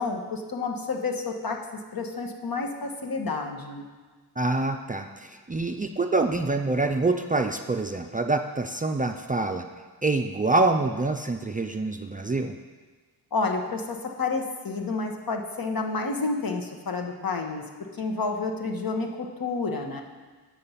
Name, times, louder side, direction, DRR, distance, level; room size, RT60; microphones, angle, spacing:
voice 1, 0.0-1.6 1.9-3.9 13.3-17.6 17.9-20.0, left 3 dB, 55° left, 2 dB, 1.2 m, -30 dB
voice 2, 4.4-9.6 10.0-12.6, right 3 dB, 20° right, 4 dB, 0.4 m, -26 dB
7.7 x 6.6 x 5.7 m, 1.4 s
cardioid pair, 60°, 42 cm